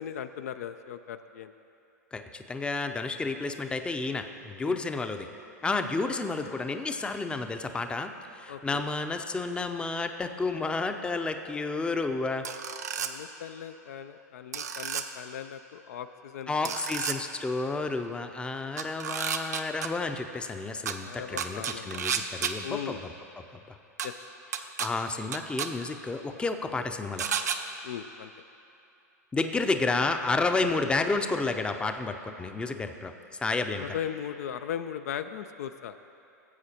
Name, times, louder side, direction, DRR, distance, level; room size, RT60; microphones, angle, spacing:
voice 1, 0.0-1.5 4.6-4.8 8.5-8.8 13.0-16.8 21.0-22.0 22.4-23.0 24.0-24.1 27.8-28.3 33.8-36.0, left 9 dB, 65° left, 10 dB, 0.4 m, -38 dB
voice 2, 2.1-5.3 5.6-12.5 16.5-23.0 23.5-23.8 24.6-27.3 29.3-33.1 33.4-33.9, left 3 dB, 10° left, 7 dB, 0.5 m, -31 dB
sound 1, 12.4-13.1 14.5-15.0 16.6-17.2 18.8-19.9 20.9-21.0 21.4-22.5 24.0-24.1 24.5-24.9 25.3-25.7 27.2-27.6, right 8 dB, 75° right, 0.6 m, -31 dB
18.0 x 8.0 x 2.9 m, 2.8 s
figure-of-eight pair, 95°, 9 cm